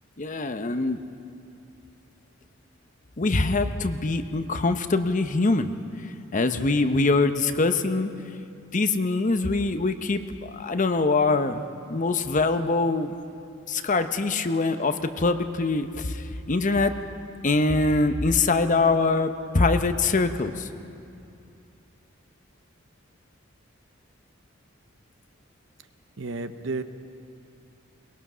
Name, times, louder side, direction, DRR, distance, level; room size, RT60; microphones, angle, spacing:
voice 1, 0.2-1.0 3.2-5.7 6.3-8.1 8.7-10.2 10.5-11.6 11.9-13.1 13.7-16.9 17.4-20.7, left 3 dB, 40° left, 9 dB, 0.8 m, -23 dB
voice 2, 26.2-26.8, right 3 dB, 70° right, 11 dB, 0.8 m, -31 dB
22.0 x 19.5 x 6.2 m, 2.6 s
head